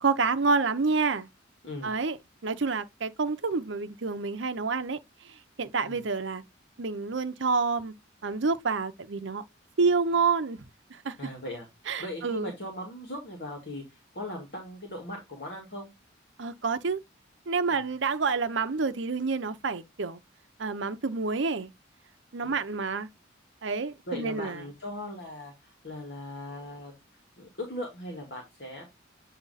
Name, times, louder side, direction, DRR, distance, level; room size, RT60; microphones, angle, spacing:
voice 1, 0.0-1.3 1.8-2.2 2.4-5.0 5.2-5.3 5.6-6.4 6.8-7.9 8.2-9.4 9.8-10.6 10.9-11.2 11.9-12.5 16.4-17.0 17.5-20.2 20.6-21.7 22.3-23.1 23.6-24.6, right 4 dB, 70° right, 0.7 m, -28 dB
voice 2, 11.2-11.7 12.0-15.9 17.7-17.8 22.5-22.6 24.1-27.0 27.4-28.8, left 1 dB, 60° left, 1.9 m, -39 dB
8.4 x 2.9 x 4.0 m
head